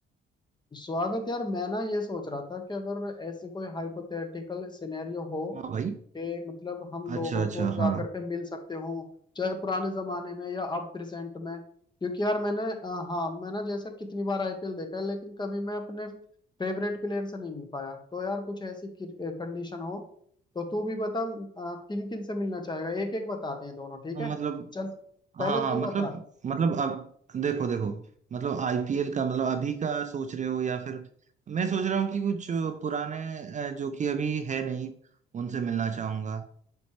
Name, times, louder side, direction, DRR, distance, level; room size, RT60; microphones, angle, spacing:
voice 1, 0.7-5.6 6.1-11.6 12.0-16.2 16.6-20.0 20.5-24.3 24.7-24.9 25.4-26.1, left 2 dB, 20° left, 1.1 m, -33 dB
voice 2, 5.5-6.0 7.1-8.0 24.1-24.7 25.3-28.0 28.3-31.0 31.5-34.9 35.3-36.4, right 6 dB, 40° right, 0.5 m, -30 dB
7.0 x 4.4 x 3.2 m
cardioid pair, 90°, 20 cm